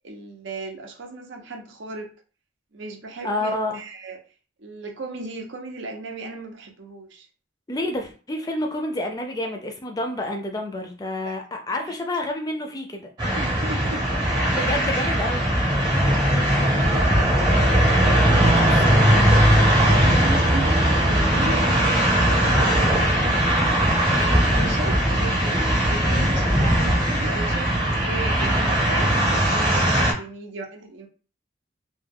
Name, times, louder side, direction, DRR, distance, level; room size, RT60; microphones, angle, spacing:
voice 1, 0.0-2.1 2.7-4.2 4.6-7.3 11.2-11.3 13.3-14.8 16.1-17.5 18.0-18.6 19.8-23.3 24.1-31.1, right 2 dB, 80° right, 3 dB, 0.7 m, -35 dB
voice 2, 3.2-3.8 7.7-13.1 14.5-15.5 18.3-19.3, left 1 dB, 20° left, 4 dB, 0.4 m, -29 dB
sound 1, 13.2-30.1, right 1 dB, 20° right, 0.8 m, -19 dB
2.3 x 2.2 x 3.4 m, 0.37 s
head